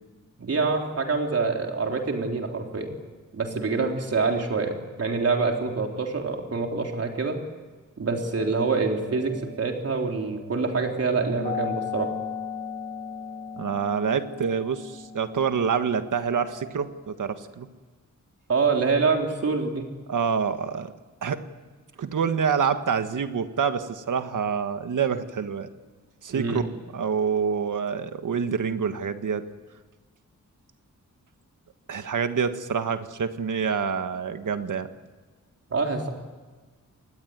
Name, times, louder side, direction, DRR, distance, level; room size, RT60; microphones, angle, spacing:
voice 1, 0.4-2.9 3.3-4.7 5.0-7.4 8.0-12.1 18.5-19.9 26.3-26.6 35.7-36.1, right 4 dB, 50° right, 2 dB, 3.8 m, -26 dB
sound 1, 8.3-16.7, left 5 dB, 25° left, 5.7 m, -37 dB
voice 2, 13.6-17.7 20.1-20.9 21.2-21.4 22.0-25.7 26.2-29.4 31.9-34.9, right 6 dB, 80° right, 9 dB, 1.7 m, -27 dB
25.5 x 19.5 x 9.6 m, 1.3 s
wide cardioid pair, 180°, 31 cm